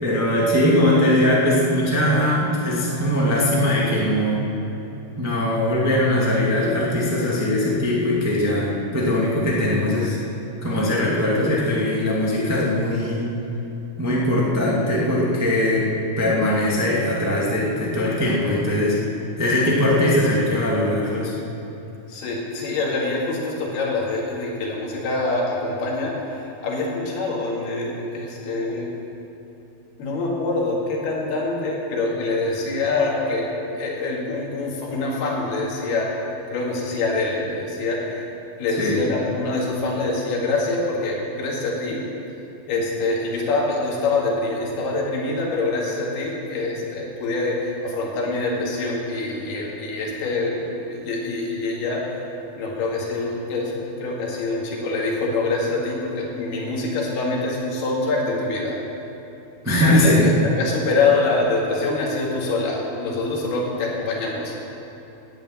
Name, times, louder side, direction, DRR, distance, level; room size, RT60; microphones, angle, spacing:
voice 1, 0.0-4.4 5.2-10.2 10.6-13.3 14.0-19.0 19.4-21.3 38.8-39.0 59.6-60.3, left 1 dB, 15° right, -5 dB, 0.6 m, -20 dB
voice 2, 22.1-28.9 30.0-36.2 36.5-38.3 38.6-42.0 42.7-52.0 52.6-58.8 59.8-64.6, left 3 dB, 90° left, -3 dB, 4.0 m, -25 dB
10.5 x 9.6 x 8.8 m, 2.9 s
omnidirectional pair, 4.4 m